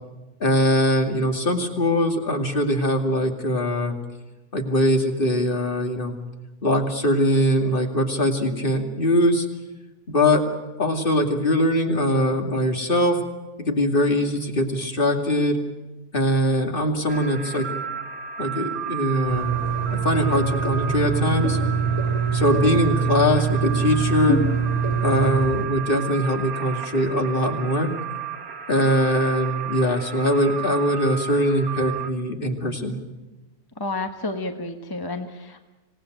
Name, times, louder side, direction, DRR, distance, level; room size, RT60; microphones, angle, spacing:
voice 1, 0.4-4.0 4.5-6.1 6.6-9.5 10.1-10.5 10.8-13.2 13.7-15.6 16.1-17.7 18.4-19.6 19.9-21.6 22.3-24.4 25.0-27.9 28.7-33.0, equal, 30° left, 4 dB, 2.6 m, -22 dB
sound 1, 17.1-32.1, right 9 dB, 65° right, 1.7 m, -33 dB
sound 2, 19.3-25.6, right 5 dB, 65° left, 4.6 m, -24 dB
voice 2, 33.8-35.6, left 2 dB, 15° left, 6 dB, 1.1 m, -30 dB
26.0 x 19.0 x 9.2 m, 1.1 s
omnidirectional pair, 1.7 m